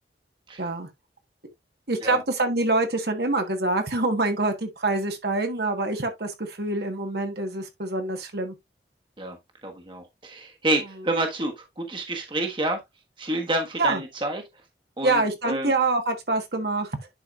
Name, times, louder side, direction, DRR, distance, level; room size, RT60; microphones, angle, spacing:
voice 1, 0.6-0.9 1.9-8.5 13.8-14.0 15.0-17.0, right 2 dB, 65° right, 1.5 m, -25 dB
voice 2, 9.6-12.8 13.2-14.4 15.0-15.7, right 1 dB, 30° right, 1.4 m, -28 dB
10.5 x 4.7 x 2.5 m
head